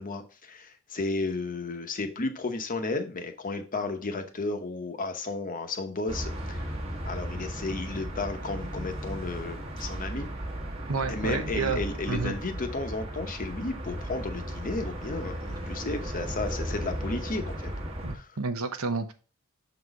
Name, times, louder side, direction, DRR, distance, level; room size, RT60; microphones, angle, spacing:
voice 1, 0.0-6.7 7.1-10.3 11.1-17.7 18.1-18.3, left 3 dB, 40° left, 7 dB, 0.9 m, -33 dB
sound 1, 6.1-18.2, right 1 dB, 25° right, 1.2 m, -35 dB
voice 2, 10.9-12.4 18.0-19.1, right 4 dB, 75° right, 9 dB, 0.9 m, -30 dB
6.2 x 4.1 x 4.8 m, 0.36 s
head